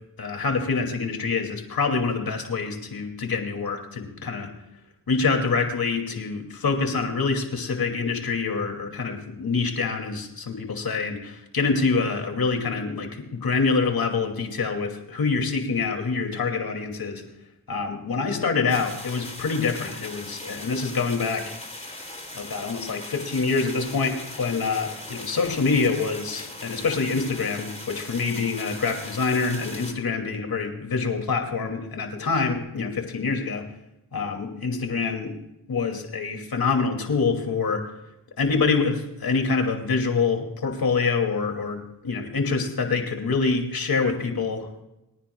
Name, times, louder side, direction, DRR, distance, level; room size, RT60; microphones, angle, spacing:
voice 1, 0.2-4.5 5.1-17.2 17.7-21.6 22.3-33.6 34.1-35.3 35.7-37.8 38.4-44.8, left 4 dB, 65° left, 4 dB, 2.6 m, -26 dB
sound 1, 18.7-29.9, left 1 dB, 15° left, 3.1 m, -39 dB
30.0 x 10.0 x 2.3 m, 0.91 s
cardioid pair, 50°, 38 cm